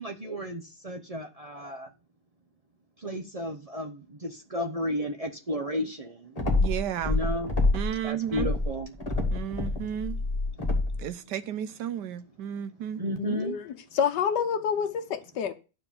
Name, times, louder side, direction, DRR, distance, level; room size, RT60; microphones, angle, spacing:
voice 1, 0.0-1.9 3.0-6.4 7.0-7.5 8.0-8.9 12.9-13.6, equal, 35° right, 0.5 m, -33 dB
sound 1, 6.4-8.0 8.3-11.1, left 2 dB, 20° left, 1.7 m, -27 dB
voice 2, 6.6-7.2 7.7-8.5 9.3-10.2 11.0-13.0, right 10 dB, 85° right, 1.3 m, -33 dB
voice 3, 13.2-13.6 13.9-15.5, left 7 dB, 80° left, 1.4 m, -28 dB
9.7 x 4.6 x 7.2 m
omnidirectional pair, 1.8 m